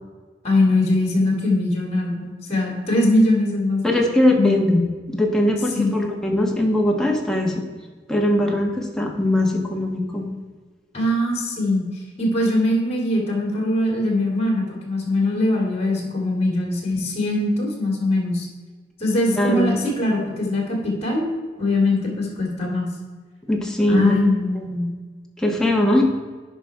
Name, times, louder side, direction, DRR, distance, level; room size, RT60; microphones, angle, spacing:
voice 1, 0.4-3.8 4.4-4.6 5.7-5.9 10.9-11.9 12.2-18.5 19.0-21.3 21.6-22.9 23.9-24.9, left 1 dB, 35° left, 0 dB, 2.2 m, -21 dB
voice 2, 3.8-7.5 8.1-10.3 19.4-19.8 23.5-24.2 25.4-26.0, left 1 dB, 5° left, 0 dB, 1.1 m, -20 dB
9.9 x 5.4 x 4.5 m, 1.4 s
head